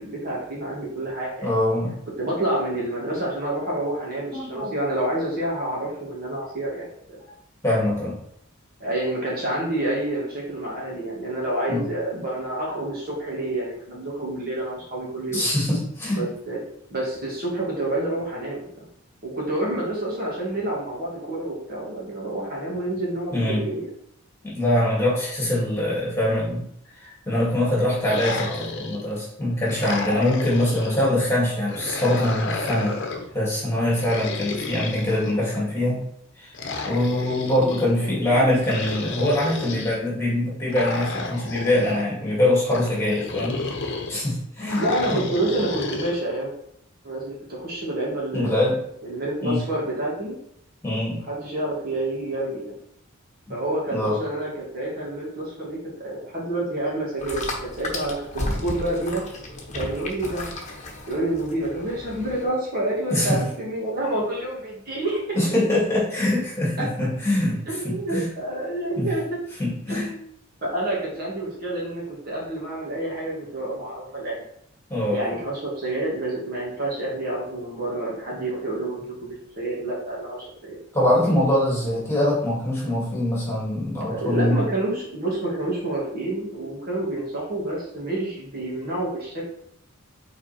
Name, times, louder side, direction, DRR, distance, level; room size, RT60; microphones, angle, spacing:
voice 1, 0.0-1.5 2.2-6.9 8.8-15.4 16.1-16.6 16.9-18.6 19.2-23.8 37.4-38.5 44.7-46.5 47.0-48.6 49.0-50.4 51.3-52.7 53.5-57.4 57.7-59.2 59.7-60.6 61.1-65.4 67.7-69.2 69.9-70.3 70.6-74.4 75.1-80.8 84.1-89.5, right 1 dB, 45° right, -5 dB, 2.3 m, -28 dB
voice 2, 1.4-2.0 4.3-4.7 7.6-8.2 11.7-11.8 15.3-16.3 23.3-23.7 24.4-26.6 26.9-33.0 33.3-36.0 36.4-36.5 36.9-43.6 44.1-44.8 45.1-45.2 48.3-48.8 49.4-49.6 50.8-51.2 53.9-54.2 63.1-63.4 65.3-68.3 69.0-69.1 69.6-70.1 74.9-75.2 80.9-84.6, left 1 dB, 15° left, -6 dB, 2.4 m, -23 dB
sound 1, 28.0-29.2 29.7-31.1 31.7-33.3 33.9-35.6 36.5-37.9 38.6-40.0 40.7-42.0 42.7-44.2 44.7-46.1, left 3 dB, 55° left, 1.0 m, -32 dB
sound 2, 57.2-62.5, left 2 dB, 35° left, 1.2 m, -33 dB
5.8 x 4.3 x 4.4 m, 0.72 s
head